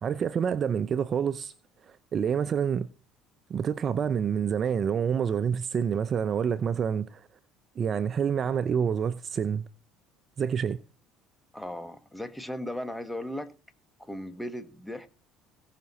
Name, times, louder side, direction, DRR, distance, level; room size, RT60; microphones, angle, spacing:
voice 1, 0.0-1.5 2.1-2.9 3.5-7.2 7.8-9.7 10.4-10.8, right 7 dB, 40° right, 0.6 m, -27 dB
voice 2, 11.5-13.5 14.0-15.1, left 1 dB, 5° left, 1.5 m, -37 dB
18.0 x 6.1 x 4.2 m
supercardioid pair, 85°, 0 cm